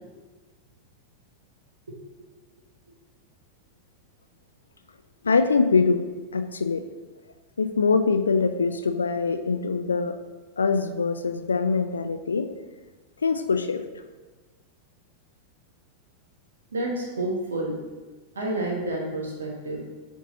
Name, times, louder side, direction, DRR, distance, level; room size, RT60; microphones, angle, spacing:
voice 1, 5.2-6.1 6.3-6.8 7.6-10.2 10.6-12.5 13.2-13.8, left 4 dB, 75° left, 8 dB, 0.4 m, -23 dB
voice 2, 16.7-17.8 18.3-19.8, right 1 dB, 70° right, -1 dB, 1.4 m, -29 dB
7.4 x 3.7 x 4.0 m, 1.3 s
figure-of-eight pair, 90°, 0 cm